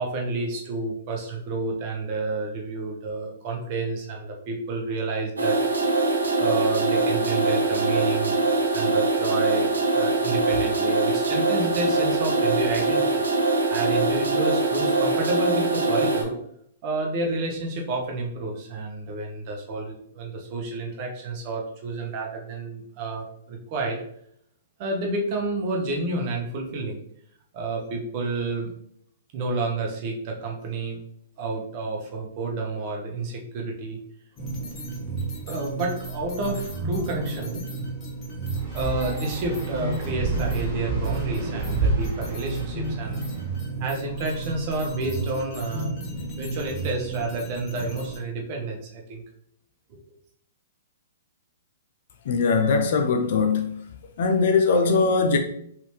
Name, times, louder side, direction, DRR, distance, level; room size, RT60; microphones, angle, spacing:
voice 1, 0.0-5.6 6.0-6.1 6.4-16.3 16.8-24.0 24.8-27.0 27.5-28.7 29.3-31.0 31.4-34.0 35.5-37.6 38.7-43.2 43.8-49.2 49.9-50.0, right 2 dB, 40° right, 0.9 m, -30 dB
sound 1, 5.4-16.2, right 3 dB, 85° right, 0.8 m, -23 dB
sound 2, 34.4-48.2, right 3 dB, 25° left, 1.1 m, -33 dB
sound 3, 38.5-43.4, right 3 dB, 15° right, 1.5 m, -29 dB
voice 2, 52.3-53.7 54.2-55.4, left 4 dB, 55° left, 0.4 m, -21 dB
3.2 x 2.7 x 3.2 m
hypercardioid pair, 125°, 0 cm